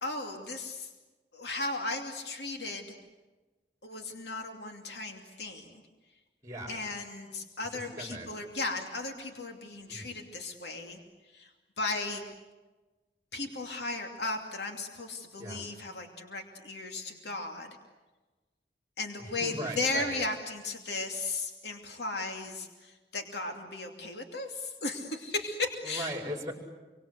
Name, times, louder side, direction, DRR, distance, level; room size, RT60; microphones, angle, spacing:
voice 1, 0.0-0.9 1.3-3.0 3.8-5.7 6.7-11.0 11.3-11.5 11.8-12.2 13.3-17.7 19.0-26.1, left 3 dB, 70° left, 3 dB, 2.7 m, -36 dB
voice 2, 6.4-6.8 7.7-8.3 9.9-10.1 15.4-15.7 19.2-20.2 25.8-26.5, right 1 dB, 20° right, 1 dB, 5.3 m, -39 dB
27.5 x 24.5 x 8.1 m, 1.2 s
head